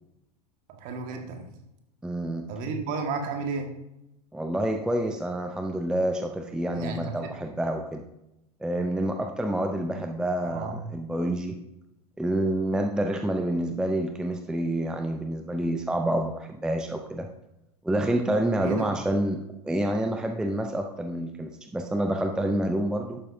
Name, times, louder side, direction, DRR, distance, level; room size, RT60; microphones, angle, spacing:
voice 1, 0.8-1.5 2.5-3.7 6.7-7.1 10.4-10.8 18.5-18.9, right 4 dB, 40° right, 3 dB, 1.7 m, -32 dB
voice 2, 2.0-2.5 4.3-8.0 8.6-11.6 12.2-17.3 17.8-23.2, right 1 dB, 5° right, 5 dB, 0.5 m, -28 dB
11.5 x 8.8 x 2.7 m, 0.89 s
figure-of-eight pair, 85°, 21 cm